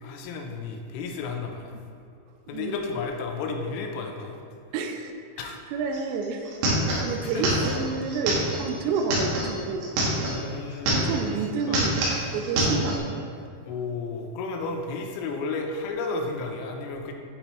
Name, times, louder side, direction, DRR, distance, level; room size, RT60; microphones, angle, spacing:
voice 1, 0.0-1.8 2.5-4.4 5.4-5.6 6.8-7.8 10.3-11.8 12.1-12.3 13.6-17.1, left 4 dB, 85° left, 3 dB, 3.2 m, -33 dB
voice 2, 4.7-5.1 5.7-6.4 7.0-9.9 10.9-11.9 12.3-12.9, right 4 dB, 90° right, 4 dB, 2.5 m, -29 dB
sound 1, 5.9-6.0 6.2-10.4 10.7-11.3 11.6-13.0, right 1 dB, 70° right, 2.9 m, -26 dB
9.7 x 3.9 x 3.0 m, 2.5 s
omnidirectional pair, 5.8 m